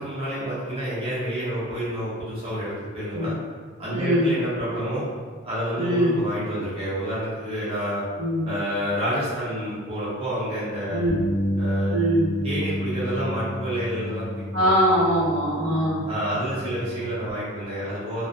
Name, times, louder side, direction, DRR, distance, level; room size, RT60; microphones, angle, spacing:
voice 1, 0.0-3.4 3.8-5.1 5.4-8.0 8.4-11.0 11.6-12.0 12.4-14.7 16.0-18.3, equal, 25° right, -11 dB, 0.6 m, -29 dB
voice 2, 3.9-4.3 5.7-6.2 8.2-8.5 10.9-11.2 11.9-12.3 14.5-16.0, equal, 80° right, -8 dB, 0.9 m, -22 dB
Bass guitar, 11.1-17.3, equal, 30° left, 0.8 m, -30 dB
2.5 x 2.0 x 2.4 m, 1.5 s
head